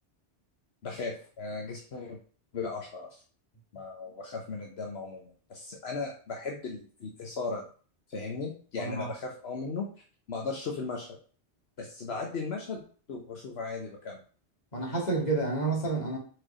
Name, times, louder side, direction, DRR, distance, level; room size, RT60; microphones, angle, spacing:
voice 1, 0.8-2.2 2.5-3.2 3.7-7.6 8.1-9.9 10.3-11.1 11.8-12.8 13.1-14.2, left 4 dB, 75° left, 1 dB, 1.2 m, -37 dB
voice 2, 8.8-9.1 14.7-16.2, right 3 dB, 40° left, -3 dB, 2.4 m, -29 dB
4.7 x 4.6 x 4.9 m, 0.41 s
omnidirectional pair, 1.1 m